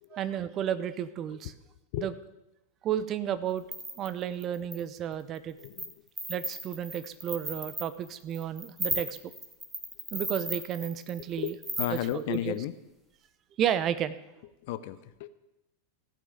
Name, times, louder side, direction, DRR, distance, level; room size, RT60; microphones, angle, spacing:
voice 1, 0.1-1.5 2.0-2.1 2.8-3.6 4.0-5.6 6.3-9.2 10.1-11.5 11.9-12.6 13.6-14.2, right 9 dB, 30° right, 13 dB, 0.7 m, -32 dB
sound 1, 3.6-4.8 5.4-5.9 6.2-12.4, right 1 dB, 10° right, 1.6 m, -36 dB
voice 2, 11.4-12.7 14.7-15.3, left 13 dB, 50° left, 13 dB, 0.6 m, -34 dB
14.5 x 6.2 x 7.4 m, 0.97 s
figure-of-eight pair, 90°, 0 cm